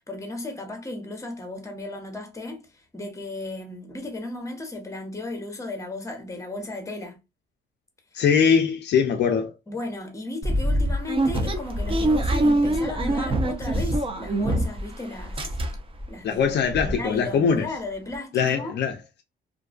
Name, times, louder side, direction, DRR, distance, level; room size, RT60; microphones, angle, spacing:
voice 1, 0.0-7.2 9.7-15.6 16.1-18.8, left 2 dB, 15° left, 0.9 m, -35 dB
voice 2, 8.1-9.5 16.2-17.7 18.3-19.2, left 6 dB, 60° left, 0.4 m, -22 dB
sound 1, 10.4-14.9 15.2-16.0 16.4-16.5 16.7-16.9, right 1 dB, 25° right, 0.5 m, -24 dB
2.5 x 2.3 x 2.3 m
cardioid pair, 90°, 20 cm